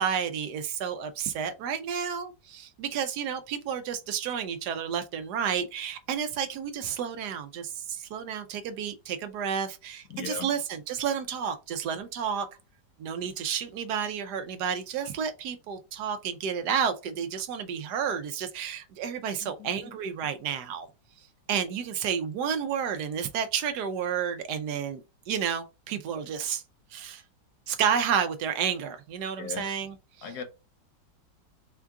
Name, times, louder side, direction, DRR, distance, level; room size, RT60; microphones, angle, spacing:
voice 1, 0.0-10.6 10.9-12.5 13.0-20.9 21.5-26.6 26.9-27.2 27.7-29.9, right 7 dB, 75° right, 1.1 m, -31 dB
voice 2, 10.1-10.5 19.4-19.9 29.4-29.7 30.2-30.4, left 6 dB, 70° left, 1.2 m, -38 dB
4.5 x 2.3 x 3.5 m
omnidirectional pair, 1.9 m